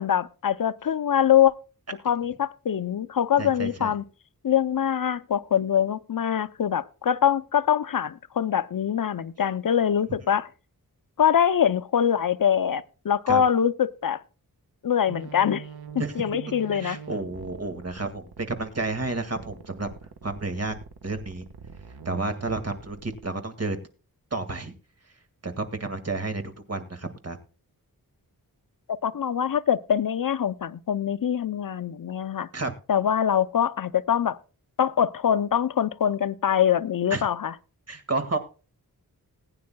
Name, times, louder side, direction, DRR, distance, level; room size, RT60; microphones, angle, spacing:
voice 1, 0.0-1.5 2.0-4.0 4.4-10.5 11.2-14.2 14.8-15.7 16.1-17.0 29.0-32.5 32.9-34.4 34.8-37.5, left 9 dB, 60° left, 0.6 m, -23 dB
voice 2, 3.4-3.9 13.3-13.4 16.0-16.1 16.7-19.9 20.2-20.7 21.0-21.5 22.1-23.8 24.3-24.7 25.4-27.4 32.5-32.7 37.1-37.2 37.9-38.4, right 3 dB, 40° right, 1.9 m, -31 dB
sound 1, 15.1-23.2, right 6 dB, 85° right, 1.3 m, -43 dB
20.0 x 9.5 x 2.2 m
wide cardioid pair, 110°, 37 cm